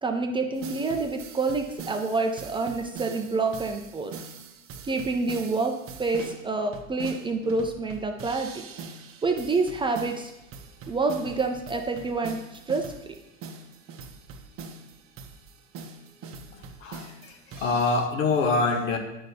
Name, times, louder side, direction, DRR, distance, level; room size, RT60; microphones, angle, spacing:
voice 1, 0.0-4.1 4.8-5.7 6.0-8.6 9.2-10.3 10.9-12.4 12.7-13.1, right 3 dB, 15° right, 4 dB, 0.4 m, -27 dB
sound 1, 0.5-18.1, right 4 dB, 35° right, 0.8 m, -43 dB
voice 2, 16.5-19.0, left 3 dB, 70° left, 5 dB, 1.2 m, -26 dB
9.0 x 5.5 x 2.8 m, 0.91 s
hypercardioid pair, 95°, 40 cm